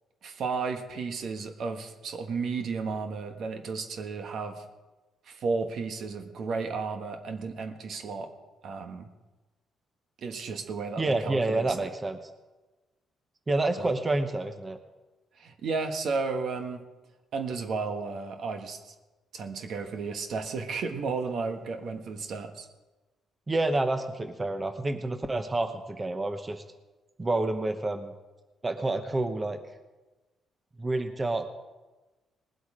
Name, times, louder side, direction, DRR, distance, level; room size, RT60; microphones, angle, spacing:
voice 1, 0.2-4.6 5.3-8.3 8.6-9.1 10.2-11.9 13.8-13.9 15.4-16.8 17.3-18.9 19.3-22.7, right 4 dB, 65° right, 6 dB, 1.4 m, -33 dB
voice 2, 11.0-12.2 13.5-14.8 23.5-26.6 27.2-28.1 28.6-29.6 30.8-31.5, right 2 dB, 25° right, 8 dB, 0.9 m, -28 dB
19.5 x 8.0 x 5.0 m, 1.2 s
cardioid pair, 90°, 0 cm